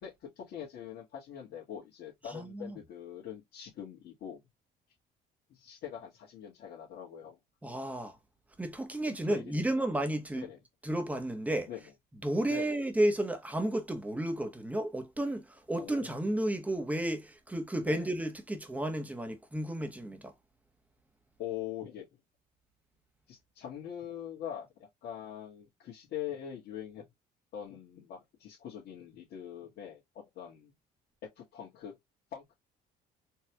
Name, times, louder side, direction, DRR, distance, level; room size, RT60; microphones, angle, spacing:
voice 1, 0.0-4.4 5.5-7.4 9.0-9.4 9.7-9.9 10.3-10.6 11.7-11.8 12.5-12.8 15.8-16.3 17.9-18.1 21.4-22.1 23.3-27.0 27.5-30.7 31.4-32.0 32.3-32.5, left 10 dB, 70° left, 1.9 m, -43 dB
voice 2, 2.3-2.7 7.6-8.2 8.6-10.5 10.8-11.7 12.2-20.3, right 1 dB, 10° right, 1.0 m, -32 dB
4.5 x 3.1 x 2.2 m
cardioid pair, 110°, 17 cm